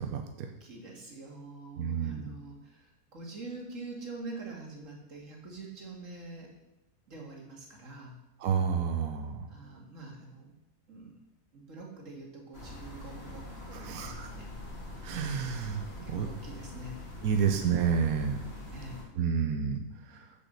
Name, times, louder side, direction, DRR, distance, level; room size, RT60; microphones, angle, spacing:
voice 1, 0.0-0.5 1.8-2.3 8.4-9.4 13.7-14.3 15.0-16.3 17.2-18.4 19.2-20.3, right 7 dB, 65° right, 5 dB, 1.2 m, -30 dB
voice 2, 0.6-6.5 7.1-8.2 9.5-10.5 10.9-11.2 11.5-14.5 16.0-17.0 17.4-17.7 18.7-19.0, right 2 dB, 50° right, -1 dB, 2.3 m, -45 dB
sound 1, 12.5-19.0, left 1 dB, 40° left, 2.2 m, -44 dB
7.7 x 7.1 x 6.7 m, 0.93 s
omnidirectional pair, 1.7 m